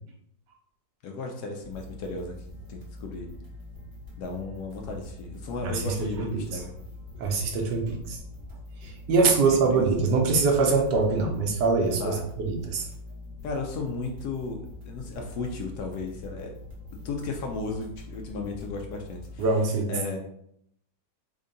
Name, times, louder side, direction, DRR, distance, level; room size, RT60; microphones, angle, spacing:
voice 1, 1.0-2.3 2.7-3.3 4.2-6.7 9.5-9.9 12.0-12.2 13.4-16.5 16.9-19.4 19.9-20.2, left 3 dB, 70° left, 2 dB, 1.0 m, -35 dB
sound 1, 1.6-19.5, left 2 dB, 40° right, 0.7 m, -43 dB
voice 2, 5.6-6.6 7.2-8.2 8.8-12.9 19.4-19.9, right 4 dB, 75° right, 2 dB, 1.2 m, -24 dB
3.6 x 2.2 x 3.8 m, 0.72 s
omnidirectional pair, 1.9 m